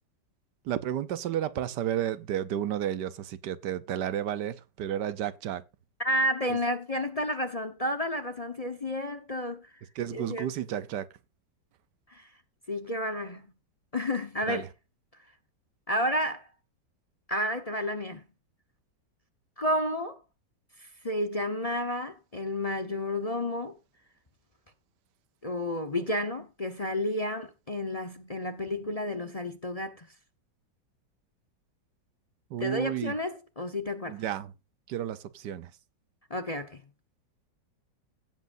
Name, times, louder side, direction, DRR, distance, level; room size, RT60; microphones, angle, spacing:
voice 1, 0.6-5.6 6.5-6.6 9.9-11.1 14.5-14.7 32.5-33.1 34.1-34.5 34.9-35.7, right 10 dB, 70° right, 1.4 m, -32 dB
voice 2, 6.0-9.7 10.1-10.5 12.1-12.3 12.7-13.5 13.9-14.6 15.9-16.5 17.3-18.2 19.6-20.2 20.8-23.8 25.4-30.1 32.6-34.2 36.3-36.8, left 1 dB, 25° left, 0.8 m, -31 dB
16.5 x 7.7 x 2.6 m
omnidirectional pair, 1.9 m